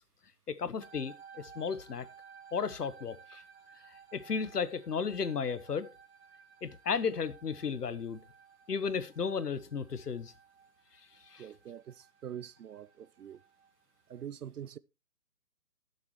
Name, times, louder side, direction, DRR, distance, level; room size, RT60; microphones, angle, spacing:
voice 1, 0.5-2.1 2.5-3.4 4.1-5.9 6.6-8.2 8.7-10.3 11.3-11.4, left 6 dB, 90° left, 1.3 m, -34 dB
sound 1, 0.8-14.3, right 6 dB, 45° right, 2.1 m, -57 dB
voice 2, 11.4-13.4 14.1-14.8, right 9 dB, 75° right, 0.7 m, -44 dB
18.0 x 7.2 x 3.0 m
hypercardioid pair, 170°, 46 cm